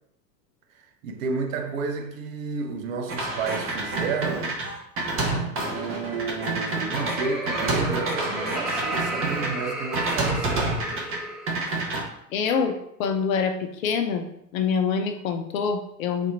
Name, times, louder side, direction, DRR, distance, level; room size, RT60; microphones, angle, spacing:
voice 1, 0.7-4.6 5.7-10.8, right 4 dB, 50° right, 0.9 m, -31 dB
sound 1, 3.1-9.5 9.9-11.2 11.5-12.0, right 2 dB, 25° right, 1.1 m, -28 dB
Laughter, 6.5-11.7, right 1 dB, ahead, 1.0 m, -33 dB
voice 2, 12.3-14.3 14.5-16.3, left 6 dB, 55° left, 0.8 m, -25 dB
4.2 x 2.8 x 4.5 m
figure-of-eight pair, 90°, 50 cm